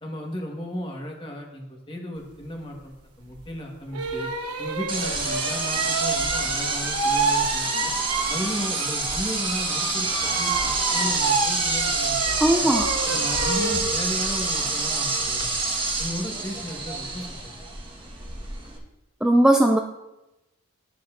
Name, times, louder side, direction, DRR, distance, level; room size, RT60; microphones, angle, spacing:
voice 1, 0.0-4.3 4.6-7.9 8.3-10.1 10.4-12.2 12.5-12.7 13.0-15.5 16.0-17.6, equal, 25° left, 0 dB, 1.4 m, -34 dB
sound 1, 3.3-3.4 3.9-9.1 9.4-15.5, right 4 dB, 90° right, 1.1 m, -29 dB
sound 2, 4.9-18.8, right 3 dB, 20° right, 1.4 m, -27 dB
voice 2, 12.4-12.9 19.2-19.8, right 1 dB, 5° right, 3 dB, 0.3 m, -18 dB
12.5 x 6.8 x 2.6 m, 0.99 s
head